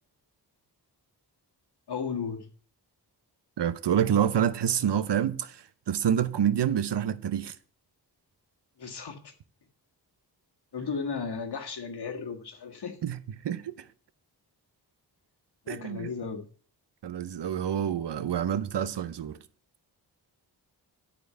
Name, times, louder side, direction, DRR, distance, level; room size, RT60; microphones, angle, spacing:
voice 1, 1.9-2.5 8.8-9.3 10.7-13.0 15.6-16.4, left 5 dB, 70° left, 1.8 m, -35 dB
voice 2, 3.6-7.6 13.0-13.2 13.4-13.8 15.7-16.1 17.0-19.4, right 9 dB, 80° right, 0.8 m, -27 dB
12.0 x 4.5 x 6.8 m
wide cardioid pair, 125°, 41 cm